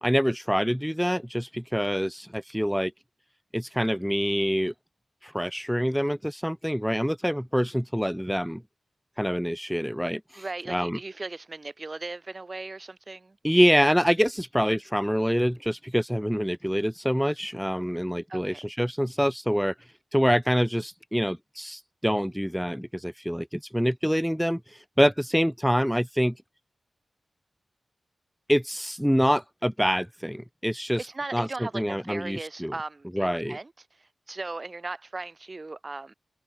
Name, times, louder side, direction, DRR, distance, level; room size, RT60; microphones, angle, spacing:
voice 1, 0.0-2.9 3.5-4.7 5.2-8.6 9.2-11.0 13.4-19.7 20.1-26.3 28.5-31.1 31.3-31.5 31.7-32.7 33.1-33.6, equal, ahead, 0.6 m, -26 dB
voice 2, 10.3-13.4 18.3-18.6 31.0-36.1, right 3 dB, 30° right, 1.8 m, -37 dB
open air
wide cardioid pair, 120°, 0 cm